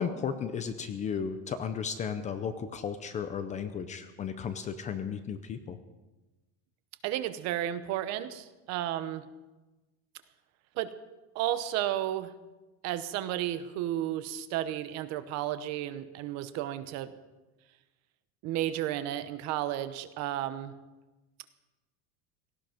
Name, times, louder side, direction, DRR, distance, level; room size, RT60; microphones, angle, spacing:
voice 1, 0.0-5.8, left 7 dB, 20° left, 10 dB, 0.5 m, -34 dB
voice 2, 7.0-9.2 10.8-10.9 11.3-12.3 12.8-17.1 18.4-20.7, right 12 dB, 45° right, 12 dB, 0.9 m, -33 dB
18.0 x 15.5 x 5.1 m, 1.1 s
cardioid pair, 180°, 35 cm